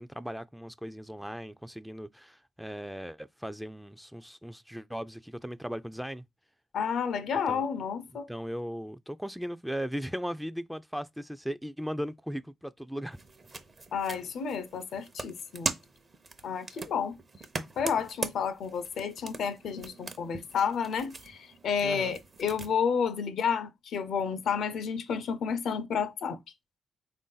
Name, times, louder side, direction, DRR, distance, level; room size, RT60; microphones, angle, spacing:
voice 1, 0.0-6.2 7.5-7.6 8.3-13.2 21.8-22.1, equal, ahead, 0.3 m, -37 dB
voice 2, 6.7-8.3 13.9-15.7 16.4-17.2 17.8-26.4, left 6 dB, 75° left, 0.5 m, -31 dB
sound 1, 13.1-22.7, right 3 dB, 45° right, 0.7 m, -41 dB
3.6 x 2.6 x 3.8 m
supercardioid pair, 55°, 0 cm